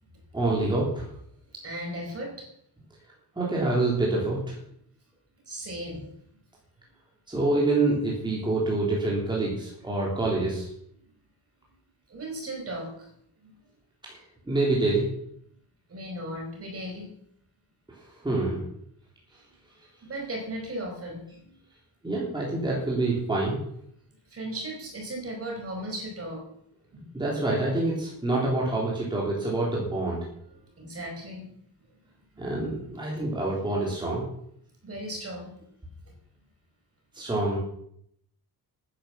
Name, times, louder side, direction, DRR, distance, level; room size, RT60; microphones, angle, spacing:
voice 1, 0.3-1.1 3.4-4.5 7.3-10.7 14.1-14.2 14.5-15.1 18.2-18.6 22.0-23.6 27.1-30.2 32.4-34.2 37.2-37.6, right 2 dB, 10° right, -4 dB, 3.6 m, -26 dB
voice 2, 1.6-2.5 5.5-6.0 12.1-13.1 13.4-13.5 15.9-17.1 20.0-21.5 24.3-26.4 26.9-27.0 30.8-31.5 33.1-33.2 34.8-35.5, right 1 dB, 35° right, 1 dB, 5.0 m, -36 dB
13.0 x 10.5 x 7.0 m, 0.72 s
wide cardioid pair, 180°, 40 cm